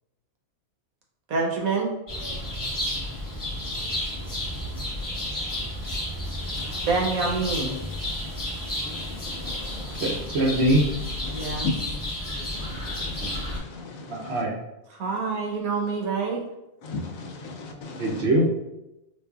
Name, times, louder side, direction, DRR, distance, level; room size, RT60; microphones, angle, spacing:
voice 1, 1.3-1.9 6.8-7.8 11.3-11.7 15.0-16.4, right 4 dB, 80° right, 0 dB, 1.2 m, -26 dB
sound 1, 2.1-13.6, left 1 dB, 15° left, 0.9 m, -31 dB
voice 2, 9.4-10.0 11.3-11.7 12.6-14.4 16.8-18.2, left 3 dB, 75° left, 3 dB, 1.0 m, -36 dB
voice 3, 10.0-10.9 13.2-13.3 14.1-14.5 18.0-18.5, right 1 dB, 60° right, -1 dB, 0.8 m, -22 dB
4.6 x 2.5 x 2.3 m, 0.92 s
omnidirectional pair, 1.5 m